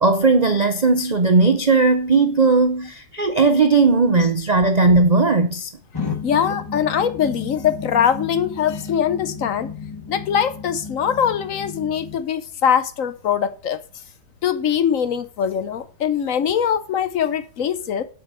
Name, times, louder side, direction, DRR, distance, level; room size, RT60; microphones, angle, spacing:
voice 1, 0.0-5.7, right 3 dB, 70° right, 0.4 m, -17 dB
sound 1, 5.9-12.2, left 5 dB, 15° left, 1.1 m, -33 dB
voice 2, 6.2-9.7 10.1-13.8 14.4-18.0, left 8 dB, 60° left, 1.0 m, -22 dB
7.7 x 6.8 x 6.8 m
omnidirectional pair, 1.8 m